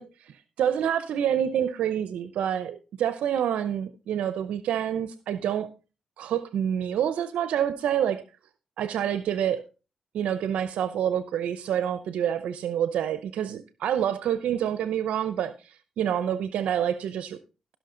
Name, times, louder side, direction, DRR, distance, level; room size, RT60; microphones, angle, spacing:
voice 1, 0.0-5.7 6.2-8.2 8.8-9.6 10.1-17.4, right 9 dB, 85° right, 12 dB, 0.6 m, -27 dB
16.5 x 6.2 x 3.8 m, 0.32 s
cardioid pair, 75°, 2 cm